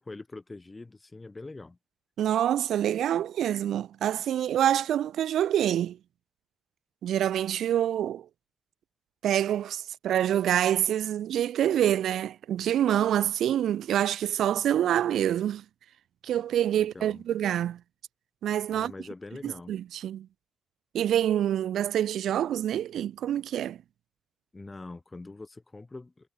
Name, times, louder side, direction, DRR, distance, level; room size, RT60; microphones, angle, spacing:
voice 1, 0.0-1.8 16.7-17.2 18.7-19.7 24.5-26.3, left 3 dB, 20° left, 0.8 m, -43 dB
voice 2, 2.2-6.0 7.0-8.3 9.2-15.6 16.2-17.8 18.4-18.9 19.4-20.3 20.9-23.8, right 11 dB, 70° right, 0.4 m, -26 dB
cardioid pair, 90°, 0 cm